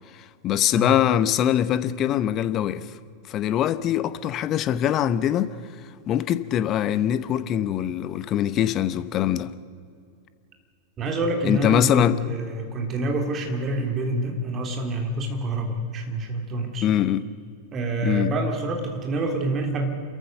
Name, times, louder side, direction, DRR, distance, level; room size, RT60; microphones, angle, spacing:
voice 1, 0.4-2.9 3.3-5.6 6.1-9.5 11.4-12.2 16.8-17.2 18.0-18.3, left 10 dB, 35° left, 0.9 m, -23 dB
voice 2, 11.0-16.9 17.7-19.9, right 2 dB, 30° right, 3.4 m, -27 dB
29.0 x 14.0 x 6.6 m
figure-of-eight pair, 90°, 0 cm